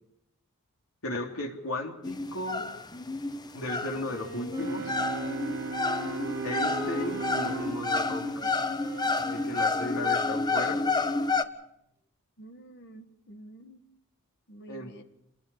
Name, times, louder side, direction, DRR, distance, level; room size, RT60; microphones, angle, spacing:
voice 1, 1.0-2.7 3.5-5.0 6.4-8.5 9.2-10.8 14.7-15.0, left 1 dB, 75° left, 2 dB, 3.4 m, -35 dB
sound 1, 2.0-11.5, left 3 dB, 20° left, 0.9 m, -30 dB
Wind instrument woodwind instrument, 3.6-11.3, equal, 15° right, 7.2 m, -42 dB
sound 2, 4.6-9.3, right 3 dB, 60° right, 0.9 m, -37 dB
voice 2, 12.4-13.8 14.5-15.0, right 1 dB, 50° left, 7 dB, 1.7 m, -48 dB
27.5 x 20.5 x 5.0 m, 0.79 s
head